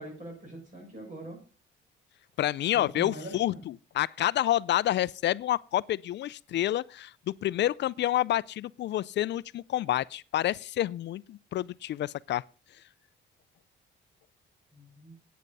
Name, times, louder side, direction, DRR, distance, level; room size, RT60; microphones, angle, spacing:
voice 1, 0.0-1.4 2.7-3.6 14.7-15.1, right 1 dB, 40° right, 6.5 m, -43 dB
voice 2, 2.4-12.4, left 13 dB, 60° left, 0.4 m, -29 dB
9.8 x 9.3 x 5.4 m
cardioid pair, 90°, 20 cm